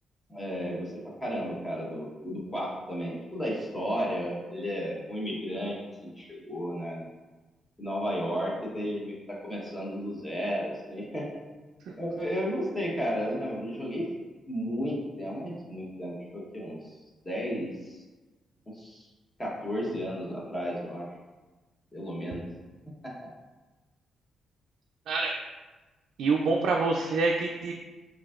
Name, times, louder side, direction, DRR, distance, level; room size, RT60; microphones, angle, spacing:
voice 1, 0.3-5.8 6.0-7.1 7.8-11.2 12.0-14.1 14.5-16.8 17.2-18.0 18.7-19.1 19.4-21.1 21.9-22.4, equal, 20° left, -4 dB, 1.0 m, -33 dB
voice 2, 26.2-27.7, right 3 dB, 80° right, 0 dB, 0.3 m, -26 dB
4.9 x 2.6 x 2.4 m, 1.2 s
cardioid pair, 100°, 0 cm